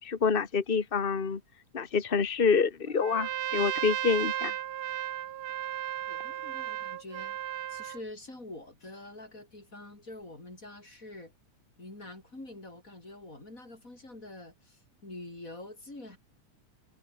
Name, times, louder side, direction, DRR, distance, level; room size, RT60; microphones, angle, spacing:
voice 1, 0.0-1.4 1.7-4.5, left 5 dB, 70° left, 0.5 m, -27 dB
Trumpet, 3.0-8.0, right 12 dB, 80° right, 2.9 m, -34 dB
voice 2, 6.1-7.4 7.7-11.3 11.8-16.2, left 2 dB, 25° left, 7.4 m, -46 dB
omnidirectional pair, 3.7 m